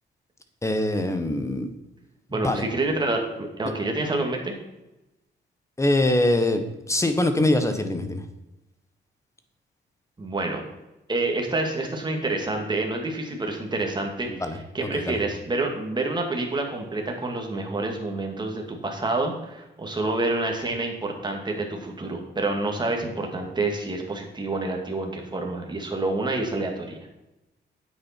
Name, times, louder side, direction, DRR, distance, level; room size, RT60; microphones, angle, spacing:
voice 1, 0.6-1.7 2.3-2.6 5.8-8.2 14.3-15.2, left 1 dB, 15° left, 8 dB, 1.2 m, -24 dB
voice 2, 2.3-4.5 10.2-10.6 11.1-14.3 14.7-27.0, right 2 dB, 25° right, 2 dB, 2.2 m, -28 dB
9.6 x 8.7 x 4.5 m, 0.96 s
cardioid pair, 120°, 19 cm